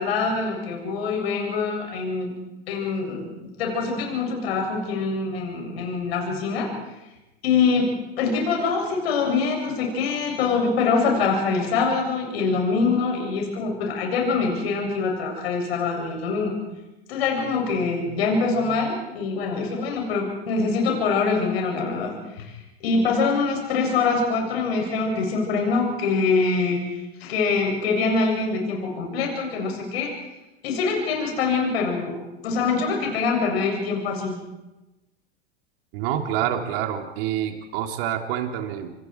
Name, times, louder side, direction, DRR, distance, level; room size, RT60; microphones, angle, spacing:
voice 1, 0.0-2.3 2.7-6.7 7.4-7.9 8.2-16.5 17.1-22.5 22.8-30.1 30.6-32.2 32.4-34.4, left 4 dB, 75° left, 1 dB, 7.7 m, -24 dB
voice 2, 35.9-38.9, right 10 dB, 65° right, 3 dB, 3.5 m, -27 dB
28.0 x 26.5 x 4.8 m, 1.0 s
hypercardioid pair, 95°, 31 cm